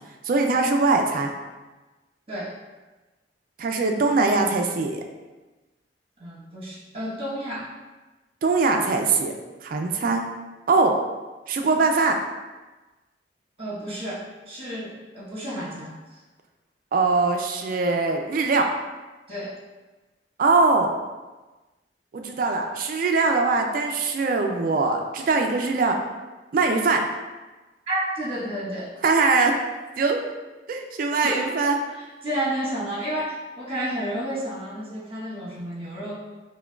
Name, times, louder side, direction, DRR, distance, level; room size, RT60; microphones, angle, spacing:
voice 1, 0.2-1.3 3.6-5.0 8.4-9.3 9.6-10.2 10.7-10.9 11.5-12.2 16.9-18.7 20.4-20.9 22.1-26.0 26.5-27.1 29.0-29.5 30.0-30.2 30.7-31.8, right 3 dB, 50° right, 3 dB, 0.3 m, -22 dB
voice 2, 6.2-7.7 13.6-15.9 19.3-19.5 27.9-28.9 31.2-31.4 31.9-36.1, right 1 dB, 35° right, -6 dB, 1.2 m, -31 dB
5.9 x 2.2 x 2.3 m, 1.2 s
head